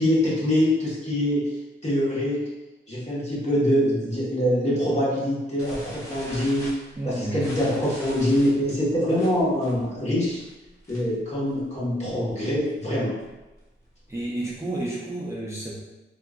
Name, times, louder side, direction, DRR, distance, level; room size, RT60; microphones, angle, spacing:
voice 1, 0.0-1.4 1.8-2.4 2.9-10.4 10.9-13.1, equal, 35° left, -8 dB, 1.3 m, -24 dB
sound 1, 5.6-11.2 11.5-11.8 12.0-12.1 12.4-12.7 13.2-14.7, equal, 15° left, 1.2 m, -42 dB
voice 2, 7.0-7.4 14.1-15.8, right 2 dB, 15° right, -7 dB, 0.5 m, -31 dB
3.7 x 2.4 x 2.4 m, 1.1 s
wide cardioid pair, 115°, 20 cm